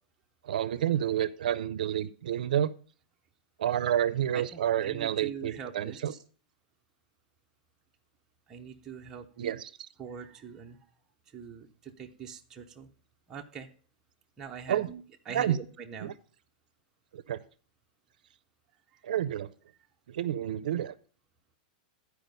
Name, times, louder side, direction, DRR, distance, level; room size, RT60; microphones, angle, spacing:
voice 1, 0.4-2.7 3.6-6.1 9.4-9.7 14.7-14.9 15.3-15.6 16.0-16.1 17.1-17.4 19.0-19.5 20.1-20.9, right 10 dB, 70° right, 16 dB, 0.6 m, -29 dB
voice 2, 4.3-6.2 8.5-9.5 10.0-10.8 11.3-12.9 13.3-13.7 14.4-16.1 18.9-19.0, right 7 dB, 10° right, 1 dB, 0.6 m, -43 dB
11.5 x 4.8 x 5.1 m, 0.41 s
supercardioid pair, 180°, 5 cm